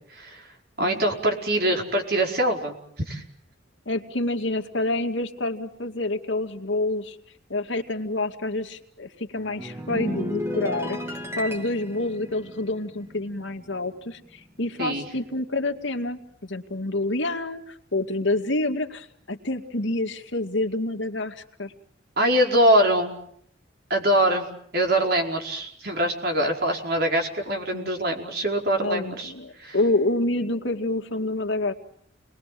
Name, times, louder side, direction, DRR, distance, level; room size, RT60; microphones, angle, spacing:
voice 1, 0.1-0.4 0.8-2.7 3.1-3.2 14.8-15.0 22.2-23.1 23.9-29.3 29.6-29.8, right 1 dB, 55° right, 2 dB, 4.8 m, -23 dB
voice 2, 3.9-7.2 7.5-21.7 27.7-27.9 28.8-31.7, left 2 dB, 75° left, 5 dB, 2.3 m, -28 dB
sound 1, 9.3-14.0 14.3-14.6, equal, 15° right, 2.5 m, -34 dB
30.0 x 21.5 x 7.7 m, 0.68 s
head